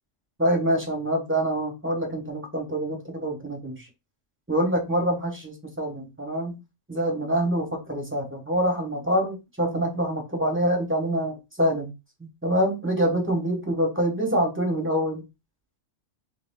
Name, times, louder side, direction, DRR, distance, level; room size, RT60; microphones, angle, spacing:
voice 1, 0.4-3.9 4.5-6.6 6.9-11.9 12.2-15.2, equal, 10° right, 1.2 m, -26 dB
3.4 x 3.4 x 3.7 m
omnidirectional pair, 1.3 m